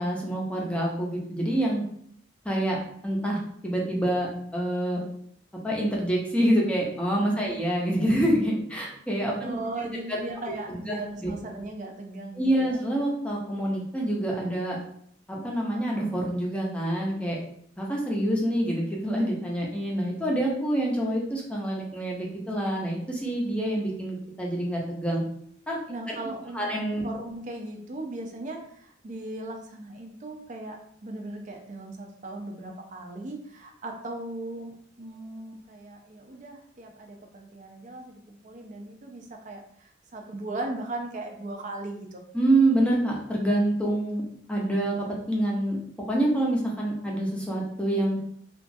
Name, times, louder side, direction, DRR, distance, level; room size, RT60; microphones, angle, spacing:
voice 1, 0.0-1.8 2.4-2.8 3.0-5.0 5.6-9.5 10.7-10.9 11.2-11.3 12.4-14.8 15.3-17.4 17.8-25.2 25.7-25.8 26.1-26.2 26.5-27.0 42.3-44.2 44.5-45.0 45.3-45.8 46.1-48.2, right 1 dB, 5° left, -2 dB, 0.5 m, -26 dB
voice 2, 9.4-12.8 25.9-26.6 27.0-42.2, right 2 dB, 40° right, 3 dB, 0.4 m, -38 dB
3.0 x 2.3 x 2.6 m, 0.66 s
head